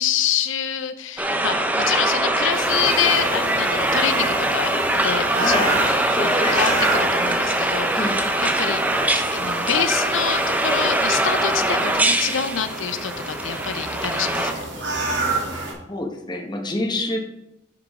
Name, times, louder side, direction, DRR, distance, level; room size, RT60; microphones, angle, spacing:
voice 1, 0.0-8.8 9.2-14.7, left 8 dB, 85° left, 10 dB, 0.7 m, -26 dB
sound 1, 1.2-14.5, right 1 dB, 10° right, 0.6 m, -22 dB
sound 2, 2.5-15.7, right 2 dB, 75° right, 2.5 m, -30 dB
voice 2, 5.4-5.7 6.1-6.6 7.9-8.2 15.9-17.2, left 2 dB, 20° left, 2 dB, 1.1 m, -26 dB
10.5 x 6.1 x 3.6 m, 0.89 s
head